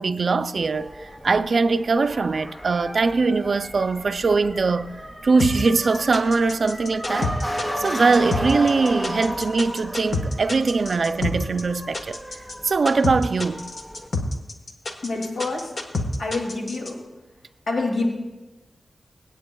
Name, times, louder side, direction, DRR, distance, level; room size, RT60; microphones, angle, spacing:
voice 1, 0.0-4.9 5.2-7.3 7.8-12.2 12.6-13.6, right 4 dB, 60° right, 0.4 m, -21 dB
Motor vehicle (road) / Siren, 0.6-14.1, equal, 20° left, 1.4 m, -34 dB
sound 1, 5.4-16.9, left 2 dB, 60° left, 1.2 m, -28 dB
voice 2, 15.0-15.7 16.2-17.0 17.7-18.1, left 3 dB, 85° left, 2.3 m, -26 dB
24.5 x 8.9 x 2.3 m
wide cardioid pair, 130°, 0 cm